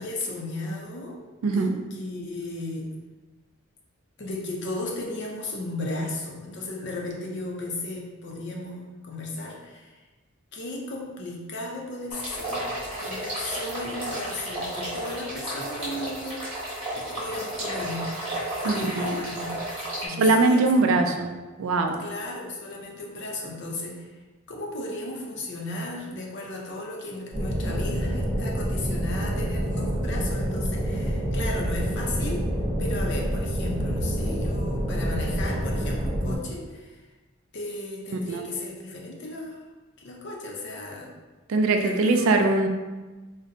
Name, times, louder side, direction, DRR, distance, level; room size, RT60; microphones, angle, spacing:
voice 1, 0.0-2.9 4.2-10.0 10.5-12.7 13.0-18.2 18.6-19.5 20.0-21.0 22.0-24.1 24.5-32.4 32.8-37.0 37.5-39.6 40.0-41.1 41.8-42.4, left 2 dB, 55° left, -1 dB, 0.6 m, -35 dB
voice 2, 1.4-1.7 18.6-19.1 20.2-21.3 21.6-22.0 38.3-38.5 41.5-42.7, right 3 dB, 70° right, 5 dB, 0.3 m, -21 dB
sound 1, 12.1-20.1, right 1 dB, 25° right, 1.0 m, -33 dB
sound 2, 27.3-36.4, equal, ahead, 0.5 m, -27 dB
3.9 x 2.1 x 2.6 m, 1.2 s
head